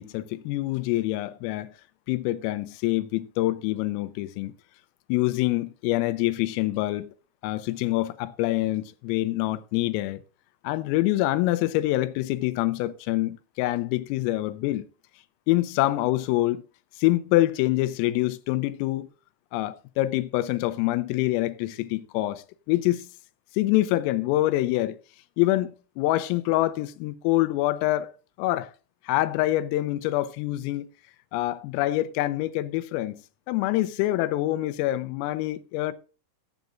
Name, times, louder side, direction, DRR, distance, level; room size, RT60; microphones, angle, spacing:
voice 1, 0.0-1.7 2.1-4.5 5.1-7.1 7.4-10.2 10.6-14.9 15.5-16.6 17.0-19.1 19.5-23.1 23.5-25.0 25.4-28.1 28.4-28.7 29.0-30.9 31.3-33.2 33.5-35.9, left 16 dB, 85° left, 3.4 m, -25 dB
19.0 x 8.1 x 2.6 m
omnidirectional pair, 6.0 m